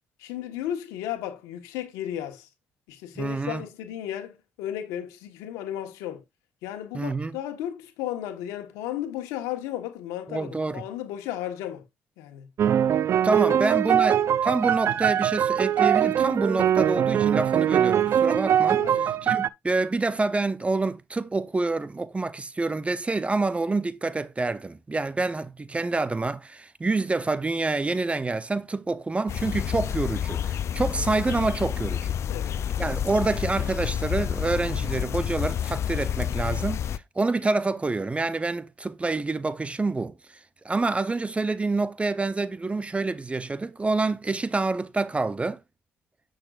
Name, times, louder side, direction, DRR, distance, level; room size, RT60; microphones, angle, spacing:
voice 1, 0.2-2.5 2.9-6.2 6.6-11.8 12.2-12.5 13.5-13.6 13.9-14.0 18.8-19.1 32.3-32.6, left 11 dB, 90° left, 1.4 m, -34 dB
voice 2, 3.2-3.6 6.9-7.3 10.3-10.8 13.2-32.2 32.8-40.2 40.6-45.6, right 3 dB, 20° right, 0.8 m, -27 dB
sound 1, 12.6-19.5, right 9 dB, 55° right, 0.4 m, -22 dB
sound 2, 29.3-37.0, left 9 dB, 60° left, 0.4 m, -29 dB
9.8 x 6.4 x 2.5 m
supercardioid pair, 65°, 5 cm